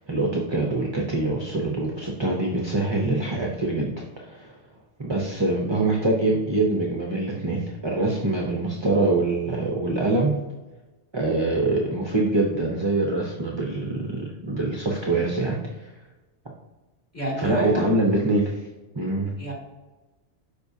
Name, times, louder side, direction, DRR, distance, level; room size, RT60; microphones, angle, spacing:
voice 1, 0.0-4.6 5.0-10.4 11.1-15.9 17.4-18.6 18.9-19.3, right 2 dB, 25° right, -1 dB, 0.7 m, -24 dB
voice 2, 17.1-17.8 19.4-19.5, equal, 10° left, -5 dB, 2.5 m, -29 dB
12.0 x 4.5 x 2.8 m, 1.1 s
omnidirectional pair, 1.2 m